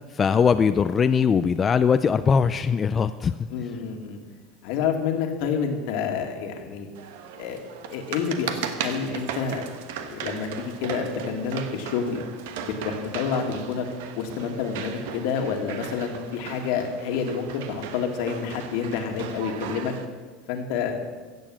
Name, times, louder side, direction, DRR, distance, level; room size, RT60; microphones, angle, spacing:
voice 1, 0.1-3.5, left 6 dB, 25° left, 10 dB, 0.4 m, -21 dB
voice 2, 3.5-4.2 4.6-6.9 7.4-7.6 7.9-9.7 10.0-12.2 12.6-13.9 14.2-19.9 20.5-21.0, left 6 dB, 70° left, 4 dB, 2.0 m, -28 dB
sound 1, 6.9-20.0, right 8 dB, 80° right, 1.2 m, -37 dB
16.0 x 7.2 x 7.5 m, 1.4 s
supercardioid pair, 135°, 0 cm